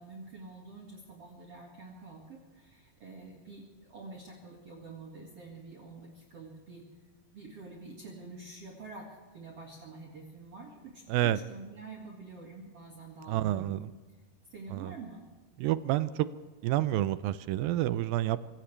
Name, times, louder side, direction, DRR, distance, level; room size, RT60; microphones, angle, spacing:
voice 1, 0.0-6.9 7.3-13.8 14.5-15.2, right 3 dB, 45° right, -2 dB, 2.5 m, -47 dB
voice 2, 13.3-13.9 14.7-14.9 15.6-16.3 16.6-18.4, right 14 dB, 80° right, 14 dB, 2.2 m, -29 dB
25.5 x 17.0 x 3.3 m, 1.3 s
omnidirectional pair, 4.5 m